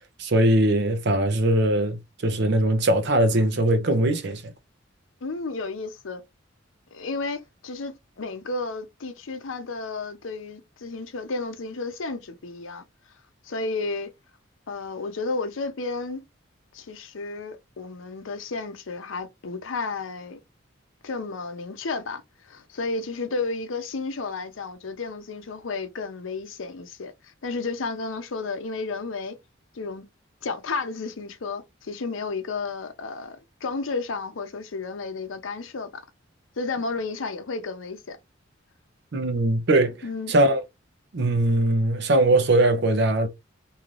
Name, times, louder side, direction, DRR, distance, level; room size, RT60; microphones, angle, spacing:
voice 1, 0.2-4.5 39.1-40.0 40.3-40.6 41.1-43.3, right 1 dB, 60° right, 0.6 m, -21 dB
voice 2, 5.2-6.2 6.9-12.8 13.4-14.1 14.7-16.2 16.7-20.4 21.0-29.4 29.7-30.1 30.4-36.0 36.6-38.2 40.0-40.3, left 3 dB, 80° left, 0.6 m, -32 dB
2.7 x 2.4 x 3.1 m
head